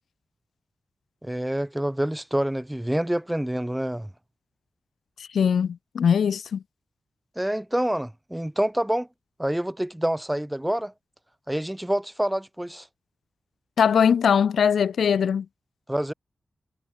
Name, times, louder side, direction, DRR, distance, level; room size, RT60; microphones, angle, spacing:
voice 1, 1.2-4.1 7.4-9.1 9.4-10.9 11.5-12.9 15.9-16.1, right 1 dB, 5° right, 1.0 m, -27 dB
voice 2, 5.2-6.6 13.8-15.5, left 7 dB, 85° left, 0.9 m, -21 dB
wide cardioid pair, 105°, 0 cm